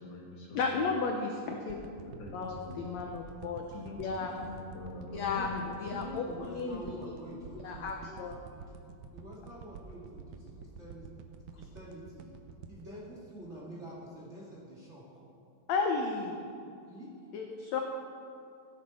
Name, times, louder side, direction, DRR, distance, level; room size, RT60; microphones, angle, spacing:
voice 1, 0.0-0.7 2.1-2.8 3.7-6.0, left 4 dB, 55° left, -2 dB, 2.4 m, -43 dB
voice 2, 0.5-1.8 2.3-3.7 4.0-4.3 5.1-5.5 5.8-7.0 7.6-8.3 15.7-16.5 17.3-17.8, left 4 dB, 70° left, 2 dB, 1.7 m, -33 dB
sound 1, 1.7-14.0 14.4-14.5, right 5 dB, 80° right, 1.6 m, -49 dB
voice 3, 5.2-8.2 8.5-8.8 9.1-11.1 11.5-12.3 12.7-15.2 16.6-17.1, right 1 dB, 25° right, -5 dB, 2.1 m, -47 dB
16.0 x 10.5 x 4.2 m, 2.6 s
omnidirectional pair, 3.9 m